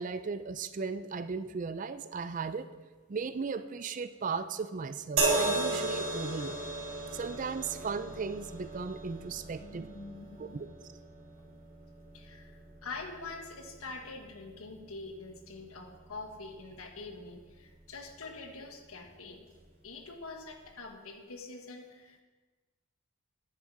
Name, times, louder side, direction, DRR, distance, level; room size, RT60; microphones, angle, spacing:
voice 1, 0.0-2.7 3.1-6.6 7.1-9.9 10.4-10.7, right 5 dB, 35° right, 12 dB, 0.4 m, -36 dB
sound 1, 5.2-18.5 19.4-19.6, right 2 dB, 65° right, 3.7 m, -37 dB
voice 2, 9.4-10.7 12.1-19.4 19.8-22.2, left 3 dB, 80° left, 3 dB, 1.5 m, -45 dB
9.9 x 9.4 x 4.7 m, 1.3 s
head